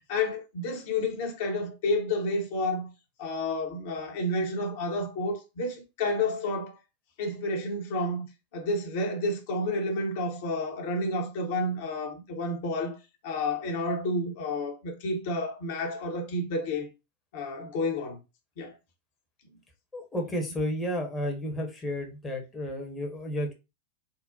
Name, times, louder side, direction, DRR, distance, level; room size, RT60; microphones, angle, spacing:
voice 1, 0.1-2.9 3.2-6.8 7.2-8.3 8.5-13.0 13.2-16.9 17.3-18.2 18.6-18.7, left 2 dB, 50° left, 0.8 m, -30 dB
voice 2, 19.9-23.5, equal, 15° left, 0.8 m, -32 dB
3.7 x 2.0 x 2.7 m
figure-of-eight pair, 90°, 0 cm